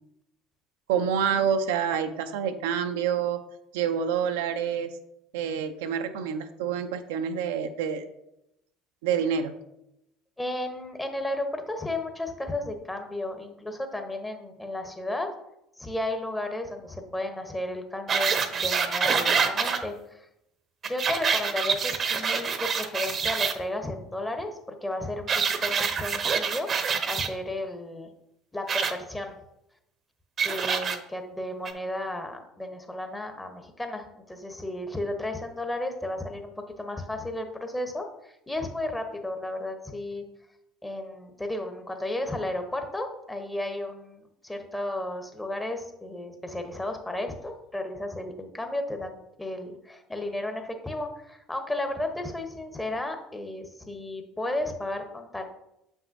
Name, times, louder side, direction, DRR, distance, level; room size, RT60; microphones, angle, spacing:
voice 1, 0.9-3.4 3.7-4.9 5.3-8.0 9.0-9.5, right 7 dB, 75° right, 7 dB, 0.5 m, -27 dB
voice 2, 10.4-15.3 15.8-20.3 20.9-26.7 27.1-28.1 28.5-29.3 30.4-40.2 40.8-55.4, left 1 dB, 10° left, 6 dB, 1.0 m, -33 dB
sound 1, 18.1-19.8 20.8-23.5 25.3-27.3 28.7-28.9 30.4-31.0 31.7-31.8, right 6 dB, 40° right, 0.7 m, -26 dB
7.3 x 5.9 x 2.7 m, 0.84 s
hypercardioid pair, 70°, 0 cm